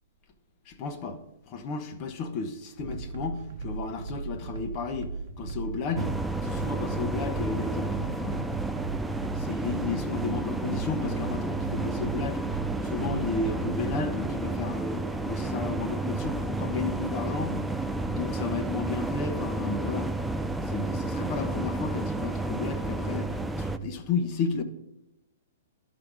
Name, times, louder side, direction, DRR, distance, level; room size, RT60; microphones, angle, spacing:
voice 1, 0.7-1.2 1.5-6.1 6.4-8.4 9.3-12.4 12.8-17.6 18.1-20.1 20.6-24.6, left 4 dB, 35° left, 1.0 m, -33 dB
sound 1, 2.8-14.0, right 4 dB, 65° right, 0.7 m, -37 dB
sound 2, 6.0-23.8, right 2 dB, 5° right, 0.4 m, -31 dB
11.5 x 3.9 x 4.8 m
hypercardioid pair, 145°, 0 cm